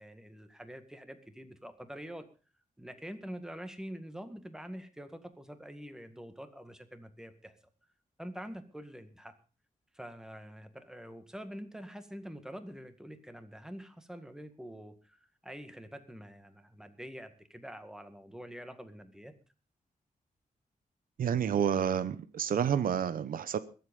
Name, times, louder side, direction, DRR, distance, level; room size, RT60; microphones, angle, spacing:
voice 1, 0.0-2.3 2.8-7.5 8.2-9.3 9.9-19.3, equal, 5° right, 9 dB, 1.9 m, -46 dB
voice 2, 21.2-23.6, right 8 dB, 90° right, 14 dB, 0.9 m, -29 dB
22.0 x 8.0 x 5.4 m, 0.36 s
wide cardioid pair, 110°, 14 cm